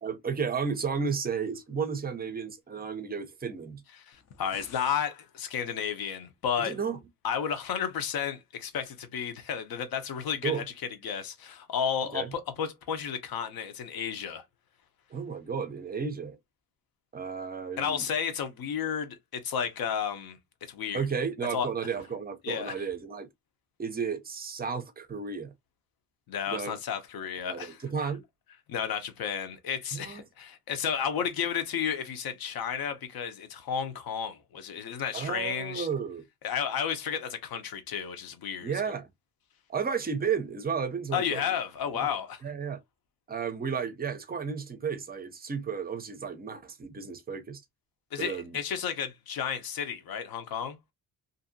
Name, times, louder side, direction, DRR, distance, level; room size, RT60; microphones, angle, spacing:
voice 1, 0.0-3.8 6.6-7.0 10.4-10.6 12.1-12.3 15.1-16.4 17.1-18.1 20.9-23.3 23.8-25.5 26.5-26.7 27.4-28.2 29.9-30.2 35.1-36.2 38.6-39.1 39.7-41.5 41.9-42.1 42.4-42.8 43.3-47.6 48.2-48.6, right 6 dB, 25° right, 0.5 m, -33 dB
voice 2, 4.1-6.7 7.2-10.6 11.0-14.4 17.8-20.4 20.7-21.1 21.5-21.7 22.4-22.8 26.3-27.8 28.7-35.9 36.4-38.7 41.1-42.4 48.1-50.8, left 7 dB, 70° left, 0.8 m, -32 dB
sound 1, 4.1-5.1, left 7 dB, 45° left, 0.5 m, -51 dB
2.7 x 2.6 x 2.6 m
wide cardioid pair, 160°, 37 cm